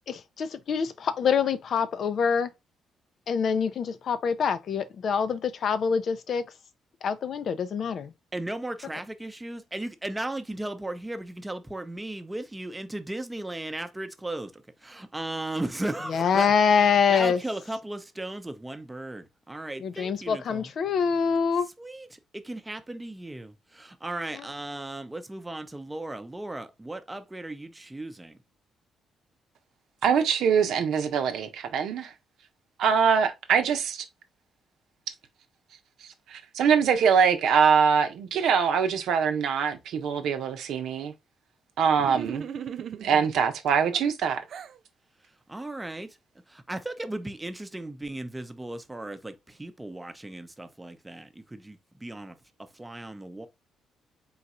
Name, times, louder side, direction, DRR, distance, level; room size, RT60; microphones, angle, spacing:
voice 1, 0.1-2.5 3.3-6.4 7.0-8.1 16.1-17.4 19.8-21.7 24.3-24.4, left 6 dB, 60° left, 0.5 m, -25 dB
voice 2, 8.3-16.5 17.1-20.7 21.8-28.4 45.5-46.2 46.5-53.5, right 1 dB, 15° right, 0.7 m, -36 dB
voice 3, 30.0-32.1 32.8-34.0 36.3-41.1 41.8-42.4 43.0-44.4, right 7 dB, 75° right, 0.8 m, -23 dB
sound 1, 42.0-43.3 43.9-44.8, right 8 dB, 60° right, 0.3 m, -37 dB
3.9 x 2.4 x 4.2 m
cardioid pair, 90°, 0 cm